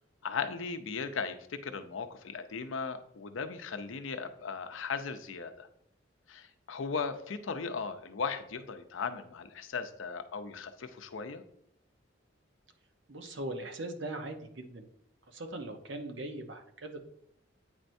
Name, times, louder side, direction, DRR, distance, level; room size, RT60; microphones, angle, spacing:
voice 1, 0.2-5.7 6.3-11.4, left 5 dB, 80° left, 9 dB, 0.6 m, -37 dB
voice 2, 13.1-14.9 15.3-17.0, right 1 dB, 70° right, 5 dB, 0.8 m, -40 dB
8.9 x 4.4 x 2.6 m, 0.74 s
head